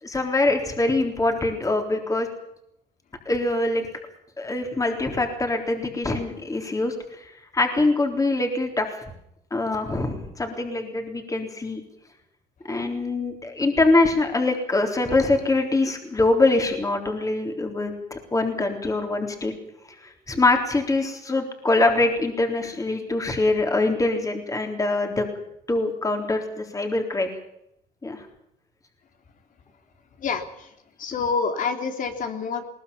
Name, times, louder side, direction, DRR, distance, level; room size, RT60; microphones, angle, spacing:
voice 1, 0.0-2.3 3.3-3.8 4.4-9.0 9.5-11.8 12.6-19.5 20.0-25.3 25.7-27.3 28.0-28.3, left 2 dB, 20° left, 4 dB, 3.8 m, -24 dB
voice 2, 30.2-30.7 31.0-32.7, left 5 dB, 50° left, 6 dB, 3.3 m, -27 dB
21.0 x 19.5 x 7.0 m, 0.78 s
cardioid pair, 110°, 17 cm